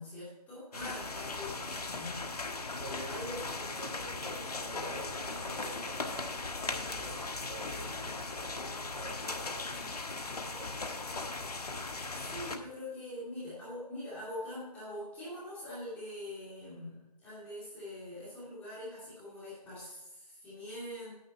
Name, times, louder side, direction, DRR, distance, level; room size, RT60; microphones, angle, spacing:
voice 1, 0.0-2.2 3.1-3.3 12.1-21.1, left 1 dB, 5° left, -10 dB, 2.5 m, -43 dB
sound 1, 0.7-12.6, left 3 dB, 70° left, 1.5 m, -38 dB
voice 2, 2.8-3.5 3.8-8.6 8.9-11.6, right 1 dB, 45° right, -2 dB, 3.9 m, -48 dB
9.7 x 7.9 x 4.3 m, 1.0 s
figure-of-eight pair, 165°, 20 cm